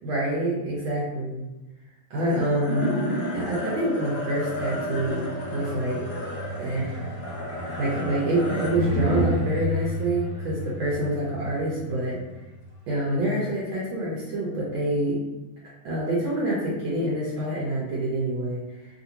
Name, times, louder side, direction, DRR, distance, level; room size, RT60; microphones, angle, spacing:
voice 1, 0.0-1.5 2.1-2.9 3.3-5.2 5.5-6.0 6.6-7.0 7.8-12.2 12.9-15.2 15.8-18.6, right 1 dB, 80° right, -6 dB, 1.5 m, -26 dB
sound 1, 2.2-12.7, equal, 55° left, 0.5 m, -30 dB
3.4 x 2.5 x 2.8 m, 1.0 s
omnidirectional pair, 2.2 m